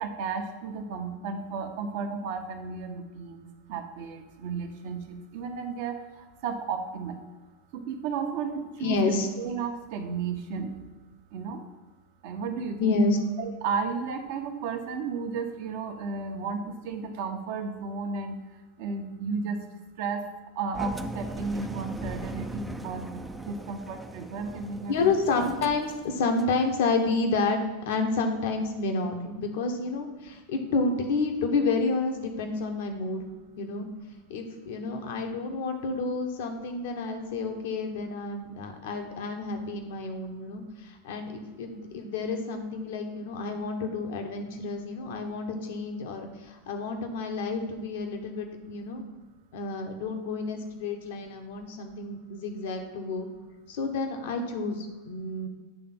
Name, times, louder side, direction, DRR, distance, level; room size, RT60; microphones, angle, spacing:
voice 1, 0.0-6.0 6.4-7.2 7.7-9.0 9.4-10.7 11.3-11.6 12.2-13.0 13.4-18.4 18.8-19.6 20.0-20.2 20.6-25.5, right 5 dB, 60° right, 5 dB, 1.0 m, -33 dB
voice 2, 8.8-9.3 12.8-13.2 24.9-27.6 27.9-33.3 33.5-33.9 34.3-49.0 49.5-53.3 53.7-55.5, left 3 dB, 65° left, 5 dB, 1.1 m, -29 dB
Engine, 20.7-26.6, right 1 dB, 10° right, 0.5 m, -39 dB
9.0 x 3.4 x 5.9 m, 1.2 s
hypercardioid pair, 90°, 0 cm